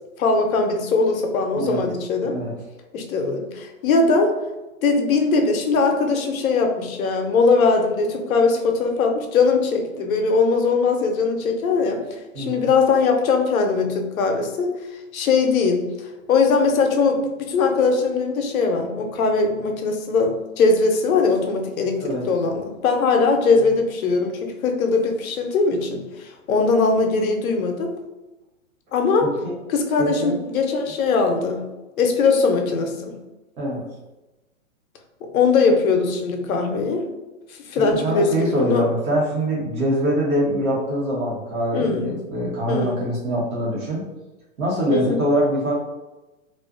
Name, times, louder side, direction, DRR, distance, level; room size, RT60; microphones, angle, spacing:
voice 1, 0.2-2.4 2.9-4.4 4.8-14.7 15.1-28.0 28.9-29.3 29.7-31.7 32.0-33.2 35.3-37.1 37.6-38.8 41.7-42.1 42.7-43.0 44.9-45.2, left 4 dB, 80° left, 4 dB, 0.7 m, -20 dB
voice 2, 1.5-1.9 2.2-2.5 12.3-12.7 22.0-22.3 29.2-29.5 30.0-30.4 33.6-33.8 37.7-44.0 44.6-45.7, equal, 90° right, -4 dB, 1.2 m, -24 dB
2.5 x 2.4 x 2.4 m, 1.1 s
hypercardioid pair, 130°, 41 cm